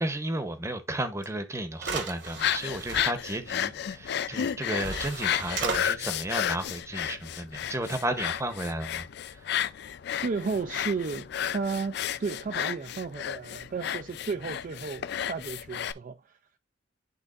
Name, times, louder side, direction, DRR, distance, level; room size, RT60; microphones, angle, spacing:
voice 1, 0.0-9.0, right 1 dB, 15° right, 0.8 m, -33 dB
sound 1, 1.2-1.3 1.8-3.0 4.4-4.5 4.8-5.8, right 4 dB, 65° right, 1.4 m, -34 dB
sound 2, 2.3-15.9, left 9 dB, 60° left, 0.4 m, -32 dB
voice 2, 10.1-16.4, right 4 dB, 45° right, 0.3 m, -33 dB
11.0 x 3.6 x 2.5 m
head